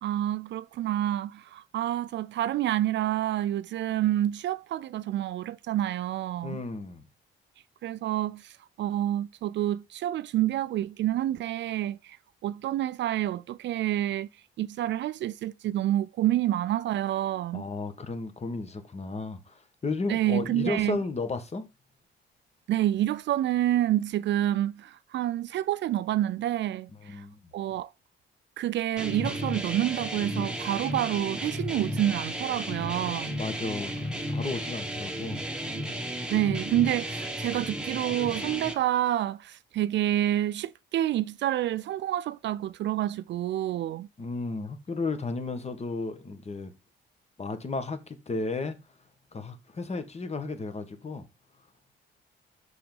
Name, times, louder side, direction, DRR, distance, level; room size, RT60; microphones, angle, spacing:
voice 1, 0.0-6.6 7.8-8.5 8.8-12.2 12.4-14.3 14.6-17.6 20.1-21.0 22.7-27.2 27.5-27.9 28.6-33.3 36.3-44.1, right 13 dB, 65° right, 0.4 m, -28 dB
voice 2, 6.4-7.1 17.5-21.7 27.0-27.4 33.4-35.5 44.2-46.7 47.4-48.8 49.3-51.2, left 3 dB, 35° left, 1.7 m, -34 dB
sound 1, 29.0-38.7, equal, 5° right, 1.9 m, -33 dB
6.2 x 5.8 x 5.3 m
cardioid pair, 90°, 20 cm